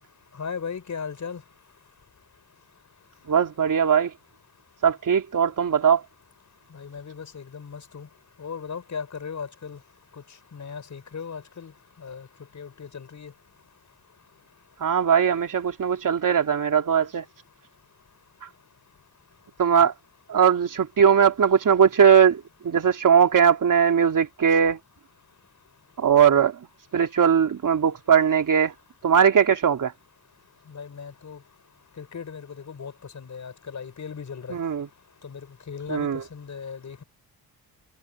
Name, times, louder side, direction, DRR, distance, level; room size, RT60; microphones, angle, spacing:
voice 1, 0.4-1.4 6.7-8.1 8.4-9.8 10.5-11.7 12.0-12.3 12.5-13.3 30.7-31.4 32.0-34.6 35.2-35.4 35.7-37.0, left 6 dB, 45° left, 5.5 m, -37 dB
voice 2, 3.3-4.1 4.8-6.0 14.8-17.3 19.6-19.9 20.3-24.8 26.0-26.7 26.9-28.7 29.0-29.9 34.5-34.9 35.9-36.2, right 7 dB, 50° right, 3.2 m, -20 dB
supercardioid pair, 70°, 40 cm